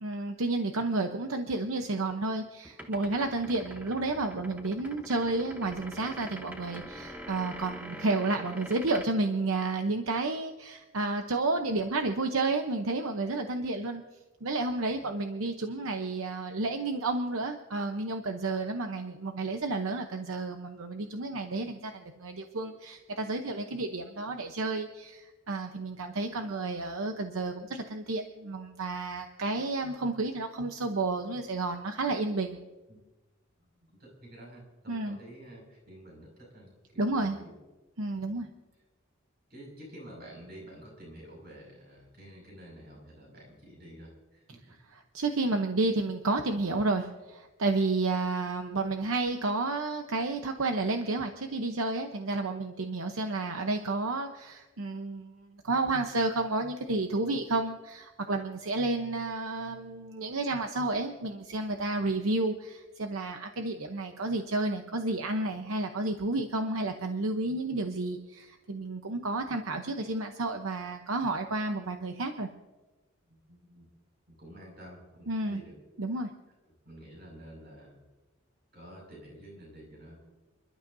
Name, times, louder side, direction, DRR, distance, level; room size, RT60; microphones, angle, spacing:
voice 1, 0.0-14.0 14.4-32.6 34.9-35.2 37.0-37.4 38.0-38.5 44.9-72.5 75.3-75.6 76.0-76.3, right 2 dB, 75° right, 5 dB, 0.9 m, -31 dB
sound 1, 2.6-9.1, equal, 5° right, 0.9 m, -44 dB
voice 2, 14.7-15.0 32.9-33.0 33.6-37.6 38.1-38.4 39.5-44.4 73.3-73.9 74.3-75.7 76.8-78.0 78.7-80.2, right 1 dB, 45° right, -1 dB, 5.8 m, -50 dB
29.5 x 12.0 x 2.7 m, 1.1 s
head